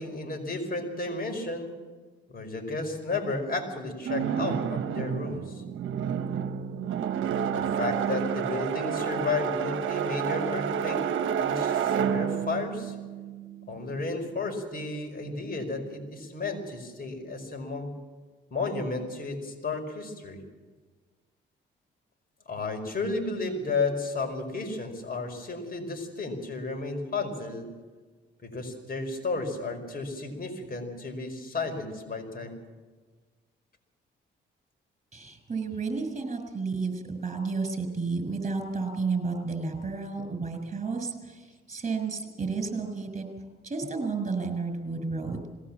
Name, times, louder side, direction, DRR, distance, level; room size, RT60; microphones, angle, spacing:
voice 1, 0.0-1.7 2.3-5.6 7.5-11.0 11.4-12.9 13.7-17.9 18.5-20.4 22.5-27.7 28.4-32.6, left 3 dB, 45° left, 3 dB, 5.0 m, -33 dB
sound 1, 4.0-14.0, right 8 dB, 75° right, 1.2 m, -30 dB
voice 2, 35.1-43.3 43.6-45.5, right 4 dB, 35° right, 6 dB, 6.3 m, -32 dB
21.0 x 17.0 x 7.4 m, 1.4 s
cardioid pair, 75°, 20 cm